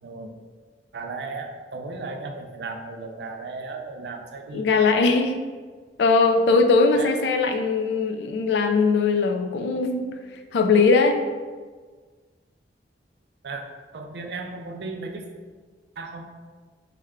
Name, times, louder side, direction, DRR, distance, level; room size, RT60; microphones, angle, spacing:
voice 1, 0.0-0.3 0.9-4.6 6.9-7.5 13.4-13.6 13.9-15.3 16.0-16.3, right 3 dB, 70° right, 4 dB, 0.4 m, -35 dB
voice 2, 4.5-5.4 6.0-10.2 10.5-11.2, left 4 dB, 75° left, 6 dB, 0.3 m, -20 dB
3.2 x 2.1 x 3.5 m, 1.5 s
head